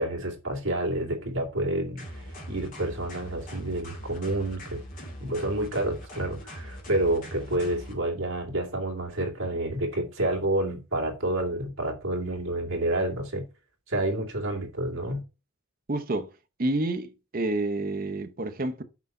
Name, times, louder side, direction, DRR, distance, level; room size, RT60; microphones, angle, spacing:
voice 1, 0.0-4.8 5.2-13.4 13.9-15.2, right 1 dB, 65° right, 2.2 m, -29 dB
sound 1, 2.0-7.9, equal, 40° left, 2.5 m, -41 dB
voice 2, 15.9-16.3 16.6-18.8, right 2 dB, 40° right, 0.7 m, -29 dB
6.0 x 5.5 x 5.3 m
head